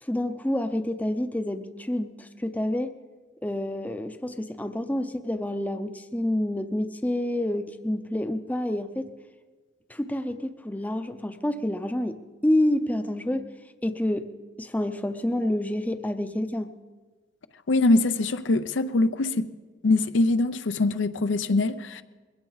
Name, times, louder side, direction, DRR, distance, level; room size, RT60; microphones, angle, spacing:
voice 1, 0.0-2.9 3.4-9.1 9.9-13.4 13.8-14.3 14.6-16.7, left 1 dB, 10° left, 0.5 m, -28 dB
voice 2, 17.7-19.5 19.8-22.0, left 2 dB, 85° left, 0.6 m, -23 dB
21.5 x 16.5 x 4.0 m
head